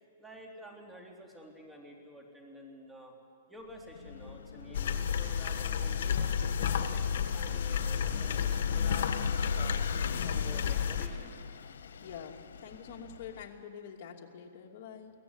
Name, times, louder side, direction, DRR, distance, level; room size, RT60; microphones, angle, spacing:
voice 1, 0.2-3.1 3.5-9.8 10.2-11.3, right 1 dB, 5° right, 1 dB, 3.2 m, -50 dB
Vehicle / Engine, 3.7-13.5, left 5 dB, 85° left, 1.3 m, -42 dB
sound 1, 4.7-11.1, left 7 dB, 65° left, 1.8 m, -31 dB
voice 2, 12.0-12.3 12.6-15.1, left 7 dB, 45° left, 1 dB, 2.7 m, -46 dB
22.5 x 17.5 x 9.8 m, 2.3 s
hypercardioid pair, 155°, 0 cm